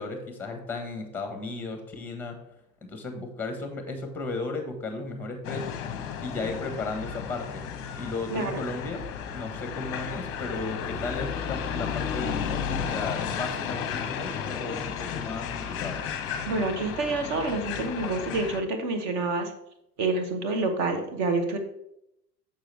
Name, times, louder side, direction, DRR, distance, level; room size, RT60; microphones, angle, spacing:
voice 1, 0.0-2.4 2.8-5.8 6.2-7.6 8.0-9.0 9.3-16.0, left 3 dB, 5° left, 5 dB, 1.3 m, -35 dB
sound 1, 5.4-18.6, left 7 dB, 30° left, 0.9 m, -33 dB
voice 2, 16.5-19.5 20.0-21.6, right 3 dB, 35° right, 6 dB, 1.2 m, -27 dB
6.9 x 6.4 x 3.3 m, 0.80 s
figure-of-eight pair, 85°, 48 cm